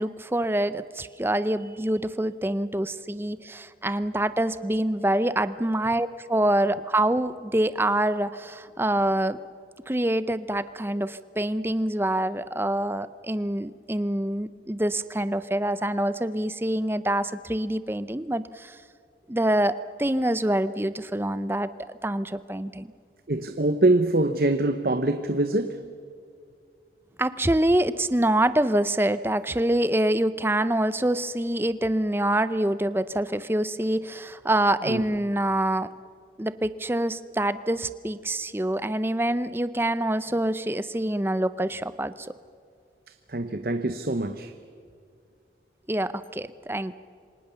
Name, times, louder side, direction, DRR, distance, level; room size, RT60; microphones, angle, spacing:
voice 1, 0.0-9.4 9.9-18.8 19.3-21.7 22.0-22.9 27.2-35.9 36.4-42.3 45.9-46.9, right 1 dB, 10° right, 14 dB, 0.6 m, -26 dB
voice 2, 23.3-25.8 34.8-35.0 43.1-44.5, right 2 dB, 55° right, 9 dB, 0.9 m, -24 dB
27.5 x 25.0 x 7.0 m, 2.3 s
head